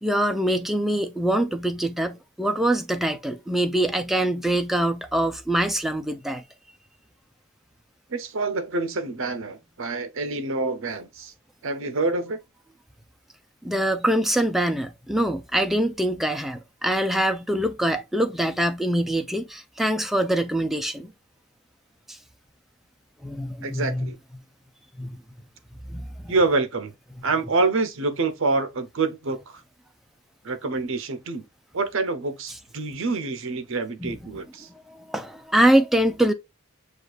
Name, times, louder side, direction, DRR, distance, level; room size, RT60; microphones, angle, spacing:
voice 1, 0.0-6.4 13.6-21.1 23.2-24.1 25.0-25.1 25.9-26.3 34.0-34.1 34.9-36.3, right 1 dB, ahead, 0.4 m, -24 dB
voice 2, 8.1-11.3 11.6-12.4 23.6-24.2 26.3-26.9 27.2-29.6 30.4-31.4 31.7-34.7, right 3 dB, 60° right, 0.7 m, -26 dB
6.4 x 2.4 x 2.3 m
head